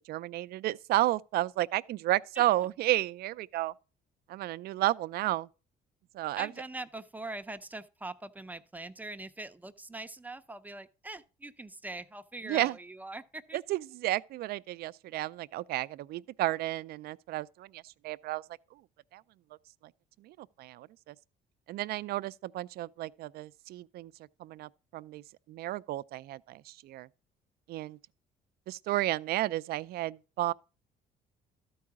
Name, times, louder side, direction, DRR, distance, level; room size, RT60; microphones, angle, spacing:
voice 1, 0.1-3.7 4.3-5.5 6.1-6.5 12.4-12.8 13.5-18.4 19.1-19.2 20.2-21.1 21.7-24.1 24.4-25.2 25.5-27.1 27.7-28.0 28.7-30.5, right 16 dB, 65° right, 0.4 m, -32 dB
voice 2, 6.4-13.6, right 2 dB, 10° right, 0.6 m, -42 dB
12.5 x 4.7 x 4.7 m
cardioid pair, 110°, 17 cm